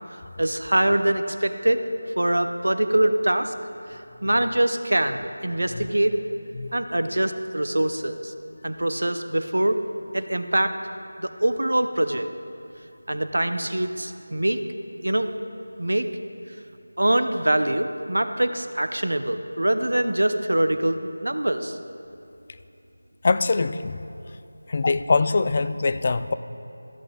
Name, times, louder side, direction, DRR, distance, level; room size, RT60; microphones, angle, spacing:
voice 1, 0.4-1.8 2.2-3.5 3.9-6.2 6.7-8.3 8.6-9.8 10.1-10.8 11.2-12.3 13.1-14.6 15.0-15.3 15.8-16.1 17.0-21.8, right 1 dB, 85° right, 9 dB, 0.7 m, -24 dB
voice 2, 23.2-24.0 24.7-26.3, left 3 dB, 35° left, 12 dB, 0.3 m, -23 dB
13.5 x 7.9 x 3.8 m, 2.8 s
figure-of-eight pair, 170°, 0 cm